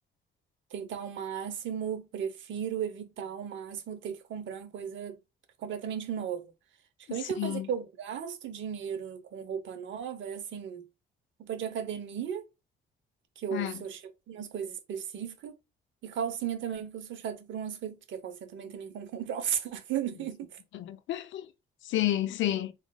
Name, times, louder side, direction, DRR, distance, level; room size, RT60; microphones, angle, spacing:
voice 1, 0.7-5.2 5.6-6.5 7.1-10.9 11.4-12.4 13.4-14.0 14.3-15.5 16.0-20.6, right 8 dB, 75° right, 0.8 m, -35 dB
voice 2, 7.1-7.7 13.5-13.8 20.7-21.5 21.8-22.7, left 13 dB, 75° left, 0.5 m, -31 dB
3.9 x 3.1 x 2.2 m
cardioid pair, 90°, 20 cm